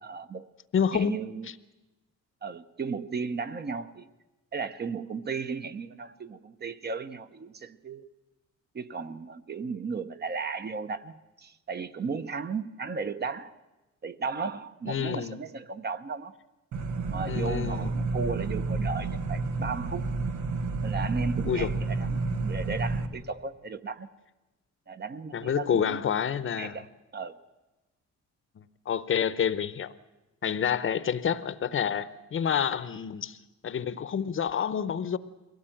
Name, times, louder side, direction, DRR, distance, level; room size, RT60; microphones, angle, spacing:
voice 1, 0.0-0.5 0.9-1.5 2.4-4.1 4.5-8.1 8.7-13.5 14.0-16.3 17.1-20.0 20.8-24.1 24.9-26.0 26.6-26.9 27.1-27.4, right 5 dB, 35° right, 0.8 m, -35 dB
voice 2, 0.7-1.2 14.9-15.4 17.3-17.9 21.5-21.7 25.3-26.8 28.6-29.9 30.4-33.4 33.6-35.2, left 8 dB, 45° left, 0.9 m, -28 dB
sound 1, 16.7-23.1, right 3 dB, 90° right, 1.8 m, -30 dB
22.0 x 17.0 x 9.1 m
cardioid pair, 135°, 29 cm